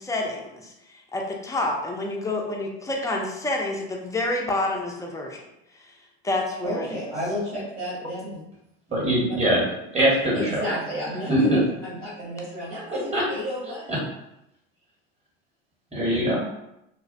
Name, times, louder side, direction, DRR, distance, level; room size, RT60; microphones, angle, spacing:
voice 1, 0.0-5.4 5.7-6.0 6.2-7.0, left 2 dB, 10° left, 0 dB, 0.3 m, -28 dB
voice 2, 6.6-8.5 9.3-9.4 10.3-14.0, equal, 85° right, -10 dB, 1.3 m, -32 dB
voice 3, 8.9-9.7 9.9-10.6 11.3-11.6 13.1-13.2 13.9-14.0 15.9-16.4, equal, 20° right, -3 dB, 1.0 m, -22 dB
2.4 x 2.0 x 2.5 m, 0.85 s
hypercardioid pair, 85°, 35 cm